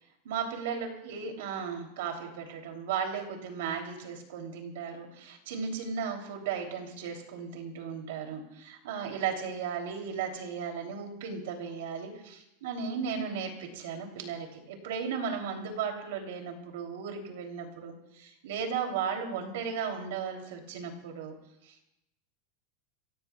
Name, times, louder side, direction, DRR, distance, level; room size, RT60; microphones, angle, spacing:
voice 1, 0.2-21.3 21.6-21.9, right 6 dB, 75° right, 3 dB, 3.1 m, -35 dB
28.0 x 17.0 x 2.4 m, 0.85 s
supercardioid pair, 170°, 0 cm